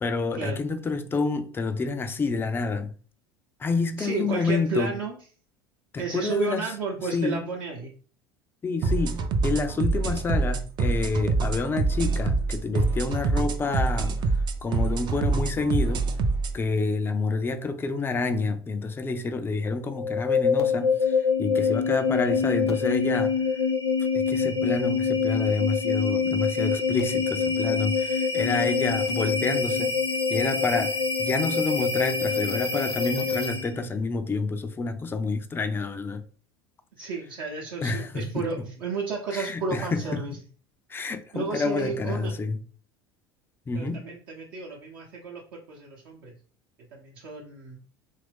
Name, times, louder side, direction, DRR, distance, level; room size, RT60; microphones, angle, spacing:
voice 1, 0.0-2.9 3.6-4.9 5.9-6.7 7.1-7.4 8.6-14.2 14.6-16.1 16.5-23.6 24.1-30.0 30.3-36.2 37.8-38.7 39.3-40.4 40.9-42.6 43.7-44.1, left 3 dB, 15° left, 0.4 m, -28 dB
voice 2, 4.0-5.2 6.0-7.9 16.7-16.9 37.0-40.4 41.3-42.3 43.7-46.3 46.9-47.8, right 4 dB, 60° right, 0.8 m, -32 dB
sound 1, 8.8-16.6, right 3 dB, 35° right, 0.5 m, -25 dB
sound 2, 19.9-33.8, left 5 dB, 90° left, 0.5 m, -25 dB
2.9 x 2.6 x 3.3 m
figure-of-eight pair, 75°, 13 cm